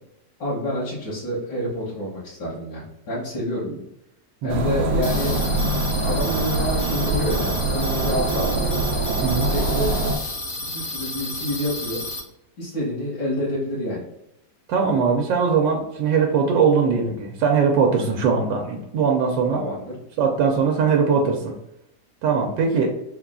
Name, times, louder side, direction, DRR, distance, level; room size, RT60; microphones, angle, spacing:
voice 1, 0.4-3.7 4.4-5.4 6.0-8.6 9.4-10.0 10.6-12.0 12.6-14.1 19.5-20.0, equal, 75° left, -8 dB, 1.9 m, -28 dB
voice 2, 4.4-4.7 9.2-9.5 14.7-19.6 20.2-21.5 22.2-23.0, right 5 dB, 85° right, 2 dB, 1.3 m, -21 dB
sound 1, 4.5-10.2, right 2 dB, 65° right, 0.9 m, -24 dB
sound 2, 5.0-12.2, left 2 dB, 55° left, 0.6 m, -32 dB
4.2 x 2.3 x 3.6 m, 0.84 s
omnidirectional pair, 2.0 m